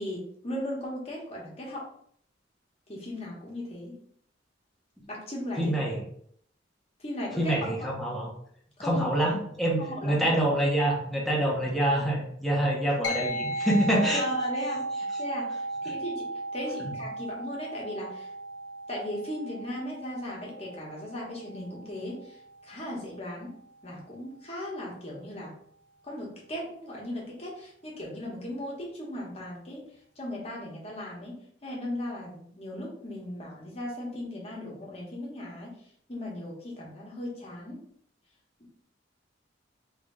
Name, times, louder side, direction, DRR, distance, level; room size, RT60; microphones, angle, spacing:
voice 1, 0.0-1.9 2.9-4.0 5.1-5.8 7.0-7.9 8.8-9.3 9.8-10.5 14.2-16.3 16.5-18.3 18.9-22.4 22.6-23.5 23.8-25.5 26.0-29.8 30.2-35.8 36.1-37.8, left 1 dB, 35° left, -3 dB, 1.2 m, -37 dB
voice 2, 5.6-6.0 7.4-8.3 8.8-14.2 16.8-16.9, right 1 dB, ahead, -3 dB, 0.8 m, -26 dB
sound 1, 13.0-22.8, right 1 dB, 90° left, 0.9 m, -36 dB
3.2 x 2.9 x 3.7 m, 0.65 s
head